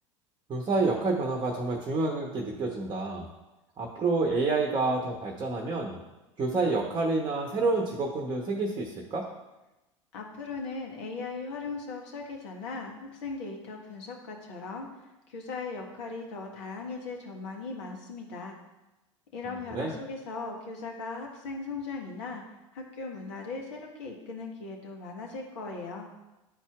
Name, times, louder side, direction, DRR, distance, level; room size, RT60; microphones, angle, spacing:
voice 1, 0.5-3.3 3.8-6.0 6.4-9.3 19.5-19.9, right 3 dB, 25° right, 0 dB, 1.0 m, -28 dB
voice 2, 10.1-14.9 15.3-18.6 19.3-22.4 22.7-26.1, left 4 dB, 60° left, 1 dB, 1.2 m, -38 dB
11.0 x 4.3 x 2.4 m, 1.0 s
figure-of-eight pair, 75°, 17 cm